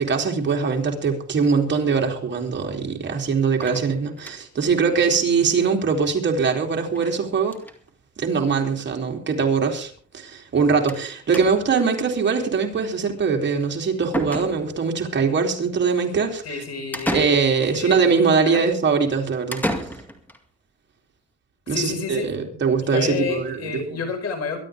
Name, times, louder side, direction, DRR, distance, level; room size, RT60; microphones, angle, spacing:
voice 1, 0.0-7.6 8.2-16.4 17.1-19.6 21.7-23.6 23.9-24.0, right 5 dB, 40° right, 2 dB, 3.2 m, -22 dB
sound 1, 3.6-4.6 5.0-5.1 5.4-5.5 5.7-5.8 7.0-7.2 7.4-7.8 8.7-8.8 9.0-9.1 10.9-11.1 11.3-11.8 13.6-13.7 14.1-14.9 16.9-17.8 19.5-20.4, equal, 5° left, 2.2 m, -31 dB
voice 2, 16.4-17.4 17.7-18.0 18.4-18.7 21.7-24.6, left 5 dB, 60° left, 4 dB, 5.0 m, -30 dB
23.5 x 12.0 x 3.5 m, 0.43 s
cardioid pair, 140°, 29 cm